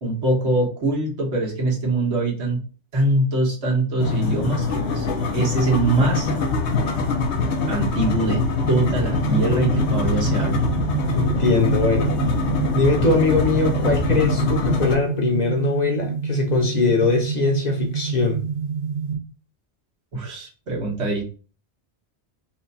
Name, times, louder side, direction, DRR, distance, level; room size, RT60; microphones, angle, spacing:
voice 1, 0.0-2.6 2.9-6.3 7.7-8.4 8.7-10.6 20.1-21.2, right 2 dB, 85° right, 1.6 m, -23 dB
sound 1, 4.0-15.0, left 3 dB, 85° left, 1.1 m, -23 dB
sound 2, 9.1-19.1, right 6 dB, 50° right, 1.1 m, -28 dB
voice 2, 11.2-12.1 12.7-18.4, left 3 dB, 45° left, 0.9 m, -21 dB
4.3 x 2.3 x 4.0 m
omnidirectional pair, 1.1 m